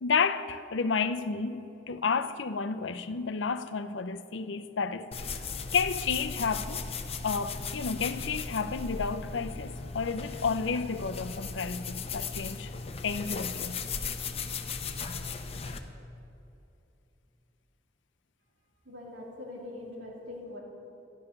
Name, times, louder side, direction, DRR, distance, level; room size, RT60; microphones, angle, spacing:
voice 1, 0.0-5.3 5.7-6.8 7.2-12.7 13.0-13.8, left 5 dB, 75° left, 0.6 m, -31 dB
sound 1, 5.1-15.8, left 5 dB, 30° left, 0.8 m, -37 dB
voice 2, 18.8-20.6, left 2 dB, 65° right, 3.0 m, -42 dB
12.5 x 11.0 x 6.7 m
head